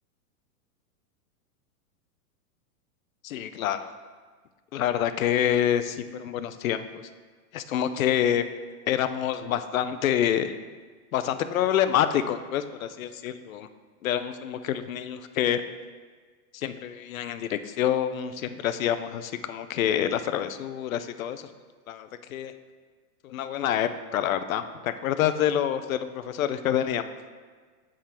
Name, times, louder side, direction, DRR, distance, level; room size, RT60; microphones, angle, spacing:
voice 1, 3.2-3.9 4.7-6.8 7.5-8.5 8.9-10.5 11.1-13.7 14.0-15.6 16.5-21.4 21.9-22.5 23.2-27.1, left 10 dB, 60° left, 11 dB, 0.5 m, -27 dB
7.7 x 3.7 x 4.3 m, 1.5 s
supercardioid pair, 180°, 47 cm